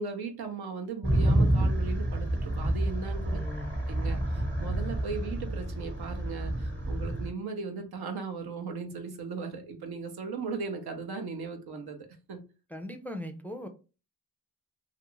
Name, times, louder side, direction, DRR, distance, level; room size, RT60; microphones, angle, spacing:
voice 1, 0.0-3.4 3.9-12.4, right 4 dB, 80° right, 0.7 m, -37 dB
sound 1, 1.0-7.3, right 1 dB, 30° right, 1.0 m, -28 dB
voice 2, 3.3-3.7 12.7-13.7, left 1 dB, 5° left, 0.4 m, -39 dB
2.5 x 2.4 x 2.9 m
cardioid pair, 70°, 38 cm